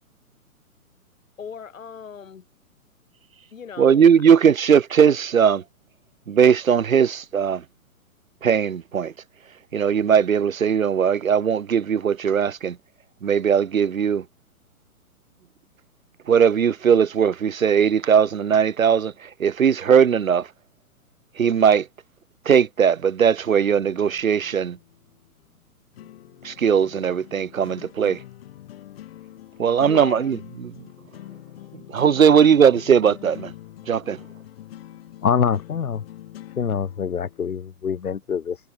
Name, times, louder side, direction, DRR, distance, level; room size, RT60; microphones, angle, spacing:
voice 1, 1.4-2.4 3.5-4.1 29.8-30.3 32.3-32.5, left 7 dB, 60° left, 3.4 m, -37 dB
voice 2, 3.8-5.6 6.3-7.6 8.4-9.1 9.7-12.8 13.2-14.2 16.3-19.1 19.4-20.5 21.4-21.9 22.5-24.8 26.4-28.2 29.6-30.4 30.6-30.7 31.9-33.5 33.9-34.2, right 7 dB, 65° right, 1.1 m, -18 dB
sound 1, 23.6-37.5, left 13 dB, 40° left, 6.3 m, -44 dB
voice 3, 35.2-36.0 36.6-38.6, left 7 dB, 85° left, 0.8 m, -24 dB
figure-of-eight pair, 120°, 44 cm